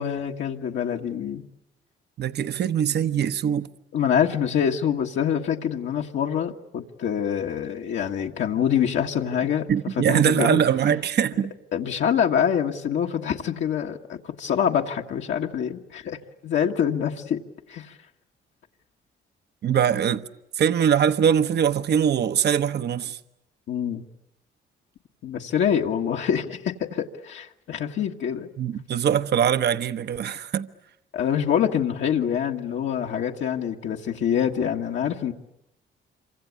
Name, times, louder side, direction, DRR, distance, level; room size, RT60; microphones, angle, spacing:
voice 1, 0.0-1.4 3.9-9.7 10.1-10.6 11.7-17.4 17.7-18.0 23.7-24.0 25.2-28.5 31.1-35.3, left 8 dB, 70° left, 1.6 m, -25 dB
voice 2, 2.2-3.7 9.7-11.5 19.6-20.2 20.6-23.2 28.6-30.7, right 8 dB, 55° right, 1.0 m, -22 dB
27.0 x 25.0 x 8.5 m
cardioid pair, 90°, 20 cm